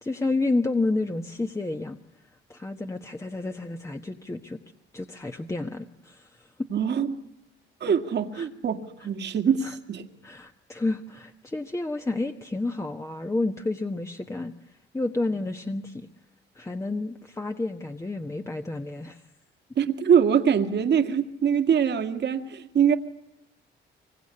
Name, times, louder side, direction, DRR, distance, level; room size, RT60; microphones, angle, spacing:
voice 1, 0.0-2.0 2.5-4.6 4.9-6.7 8.3-8.5 9.0-9.1 9.6-9.8 10.2-16.1 16.5-19.2, left 2 dB, 15° left, 1.2 m, -30 dB
voice 2, 6.7-7.2 7.8-10.0 19.8-23.0, right 7 dB, 60° right, 2.1 m, -23 dB
24.5 x 23.5 x 9.8 m
cardioid pair, 90°, 20 cm